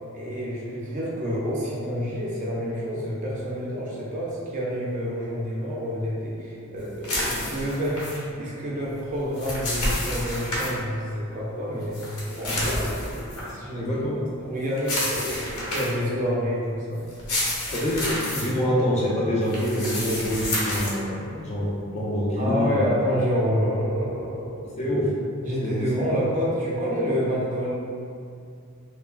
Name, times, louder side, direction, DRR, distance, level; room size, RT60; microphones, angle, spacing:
voice 1, 0.1-14.0 14.4-15.4 15.7-17.1 22.4-24.6 25.4-27.7, equal, 35° right, -5 dB, 0.4 m, -28 dB
sound 1, 7.0-8.2 9.1-10.7 11.9-13.5 14.8-16.0 17.1-18.5 19.5-21.0, left 1 dB, 90° left, 0.7 m, -29 dB
voice 2, 13.7-14.2 17.7-22.8 23.5-23.7 24.8-25.2 25.6-25.8, equal, 30° left, -6 dB, 0.4 m, -26 dB
3.1 x 2.2 x 2.2 m, 2.4 s
head